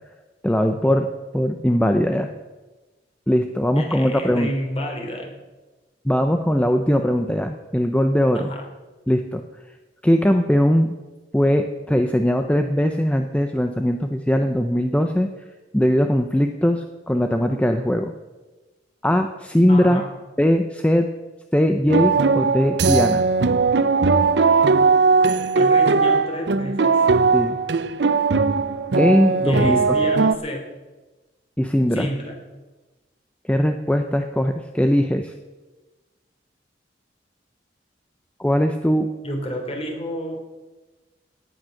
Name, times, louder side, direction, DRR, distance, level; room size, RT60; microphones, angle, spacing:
voice 1, 0.4-1.1 1.3-2.3 3.3-4.5 6.0-8.5 9.1-9.4 10.0-10.9 11.3-15.3 15.7-18.1 19.0-20.0 20.4-21.1 21.5-23.2 27.3-27.6 29.0-29.8 31.6-32.1 33.5-35.3 38.4-39.1, equal, 5° left, 6 dB, 0.6 m, -20 dB
voice 2, 3.8-5.3 8.3-8.6 19.7-20.0 25.5-26.9 29.4-30.6 31.9-32.4 39.2-40.4, equal, 35° left, 2 dB, 3.3 m, -30 dB
sound 1, 21.9-30.3, right 4 dB, 65° right, 0.6 m, -18 dB
17.0 x 9.0 x 6.5 m, 1.2 s
head